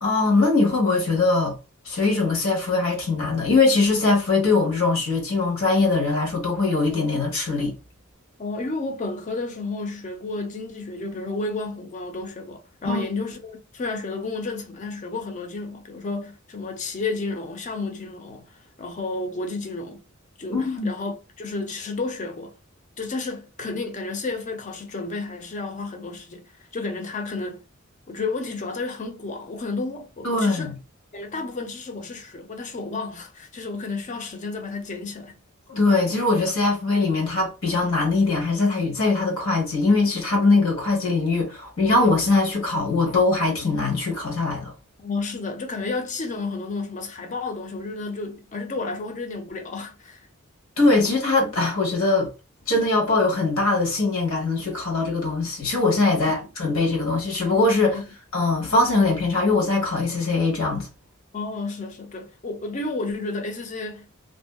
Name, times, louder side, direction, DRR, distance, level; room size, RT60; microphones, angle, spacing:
voice 1, 0.0-1.5 1.8-7.7 12.8-13.0 20.5-20.9 30.2-30.8 35.7-44.7 50.8-52.3 52.7-58.0 58.3-60.9, left 3 dB, 70° left, 1.1 m, -21 dB
voice 2, 8.4-20.0 20.4-22.5 23.0-27.6 28.1-30.7 31.1-35.3 45.0-50.3 57.8-58.0 61.3-64.1, left 3 dB, 35° left, 0.5 m, -32 dB
2.6 x 2.3 x 2.2 m
head